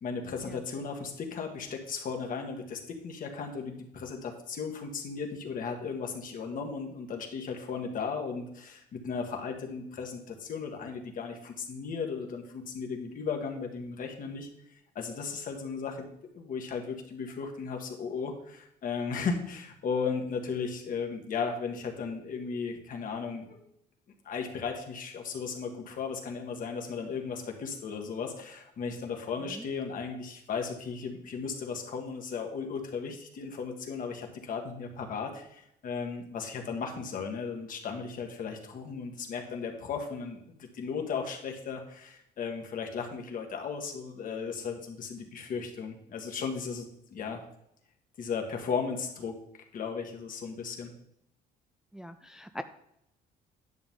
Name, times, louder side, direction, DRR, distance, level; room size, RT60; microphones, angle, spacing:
voice 1, 0.0-14.5 15.0-16.1 16.3-23.6 24.3-47.4 48.2-49.4 49.7-50.9, left 5 dB, 55° left, 3 dB, 1.8 m, -36 dB
voice 2, 51.9-52.6, equal, 5° right, 8 dB, 0.4 m, -42 dB
10.5 x 7.0 x 3.8 m, 0.76 s
cardioid pair, 110°, 17 cm